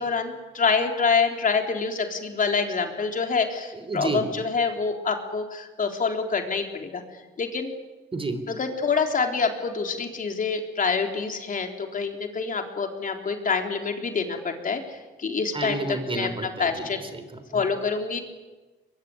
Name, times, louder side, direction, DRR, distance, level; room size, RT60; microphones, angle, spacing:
voice 1, 0.0-7.0 7.4-7.7 8.5-15.8 16.1-17.0 17.5-18.2, left 5 dB, 40° left, 4 dB, 3.8 m, -26 dB
voice 2, 3.7-4.3 8.1-8.4 15.5-17.6, right 3 dB, 25° right, 10 dB, 3.7 m, -31 dB
22.5 x 22.5 x 9.8 m, 1.2 s
cardioid pair, 90°, 20 cm